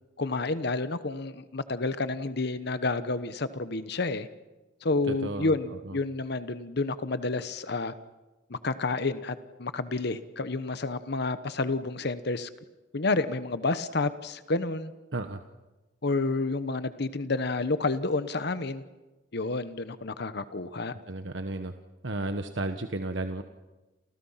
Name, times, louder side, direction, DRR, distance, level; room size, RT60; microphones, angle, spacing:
voice 1, 0.2-4.3 4.8-7.9 8.5-12.5 12.9-14.9 16.0-18.8 19.3-21.0, left 3 dB, 60° left, 12 dB, 1.1 m, -30 dB
voice 2, 5.1-6.0 15.1-15.4 21.1-21.7 22.0-23.4, right 2 dB, 70° right, 7 dB, 1.3 m, -33 dB
29.5 x 29.0 x 5.8 m, 1.1 s
head